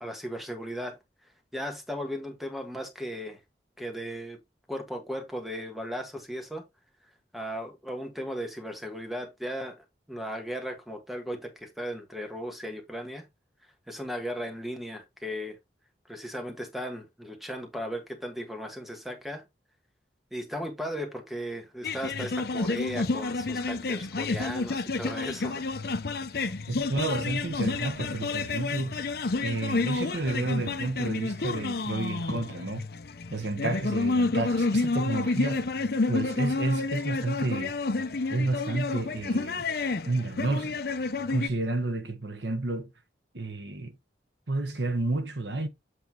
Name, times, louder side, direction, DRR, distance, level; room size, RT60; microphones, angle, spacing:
voice 1, 0.0-1.0 1.5-3.4 3.8-4.4 4.7-6.6 7.3-9.8 10.1-13.3 13.9-15.6 16.1-19.4 20.3-25.6, equal, ahead, 1.5 m, -36 dB
sound 1, 21.8-41.5, left 3 dB, 55° left, 0.7 m, -30 dB
voice 2, 26.7-29.0 29.4-32.8 33.3-35.6 36.1-37.8 38.3-39.7 40.1-40.7 41.3-42.9 43.3-43.9 44.5-45.7, right 2 dB, 70° right, 1.3 m, -30 dB
7.9 x 3.3 x 4.5 m
head